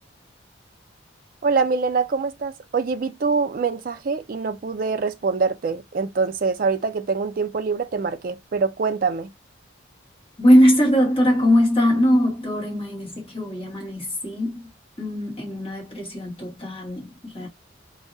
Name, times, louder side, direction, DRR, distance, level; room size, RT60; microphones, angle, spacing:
voice 1, 1.4-9.3, right 4 dB, 45° right, 0.4 m, -24 dB
voice 2, 10.4-14.7 15.0-17.5, equal, 25° left, 1.2 m, -20 dB
2.6 x 2.0 x 2.5 m
head